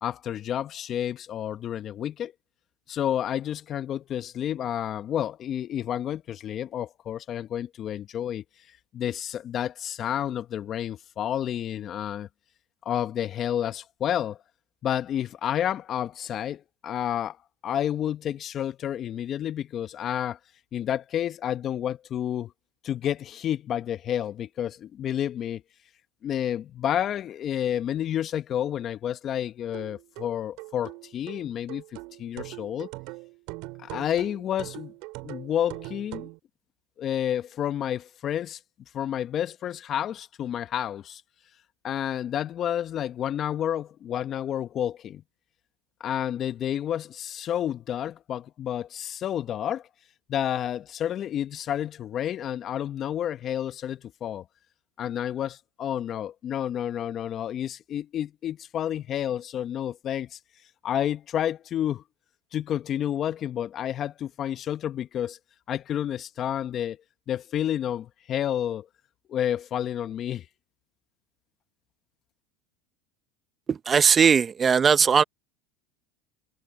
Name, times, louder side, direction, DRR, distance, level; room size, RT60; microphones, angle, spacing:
voice 1, 0.0-2.3 2.9-8.4 8.9-12.3 12.8-14.4 14.8-17.4 17.6-20.4 20.7-22.5 22.8-25.6 26.2-32.9 33.8-34.9 35.2-36.3 37.0-38.6 38.9-41.2 41.8-45.2 46.0-49.8 50.3-54.4 55.0-60.4 60.8-62.0 62.5-65.4 65.7-67.0 67.3-68.9 69.3-70.4, left 10 dB, 45° left, 1.2 m, -30 dB
sound 1, 29.7-36.4, right 25 dB, 65° right, 4.8 m, -41 dB
voice 2, 73.7-75.2, right 6 dB, 30° right, 1.2 m, -19 dB
supercardioid pair, 100°, 0 cm